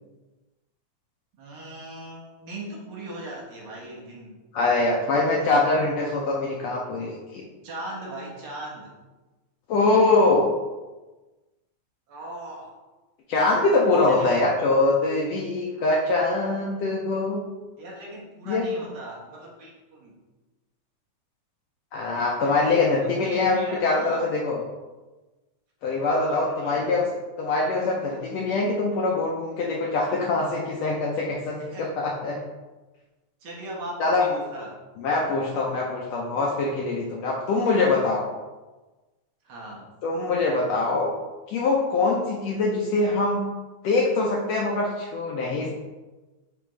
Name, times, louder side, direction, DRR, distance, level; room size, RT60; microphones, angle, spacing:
voice 1, 1.4-4.4 7.6-8.9 12.1-12.8 14.0-14.5 17.8-20.1 22.7-24.2 26.1-27.0 31.7-31.9 33.4-34.7 39.4-39.9, right 2 dB, 45° right, -4 dB, 1.6 m, -39 dB
voice 2, 4.5-7.4 9.7-10.5 13.3-17.4 18.5-18.6 21.9-24.6 25.8-27.1 27.4-32.4 34.0-34.3 35.0-38.3 40.0-41.1 41.5-43.4 43.8-45.7, left 3 dB, 75° left, -2 dB, 1.6 m, -23 dB
8.7 x 3.4 x 3.2 m, 1.2 s
omnidirectional pair, 3.5 m